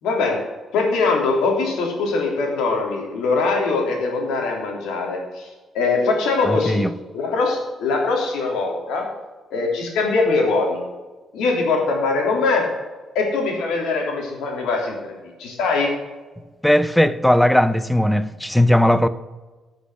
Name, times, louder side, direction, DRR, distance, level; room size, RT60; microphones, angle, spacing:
voice 1, 0.0-5.5 5.7-6.9 7.1-9.1 9.5-10.8 11.3-12.7 13.1-15.0 15.4-15.9, left 3 dB, 90° left, 3.2 m, -22 dB
voice 2, 6.4-6.9 16.6-19.1, left 1 dB, 5° left, 0.7 m, -17 dB
13.0 x 6.6 x 6.2 m
cardioid pair, 90°, 0 cm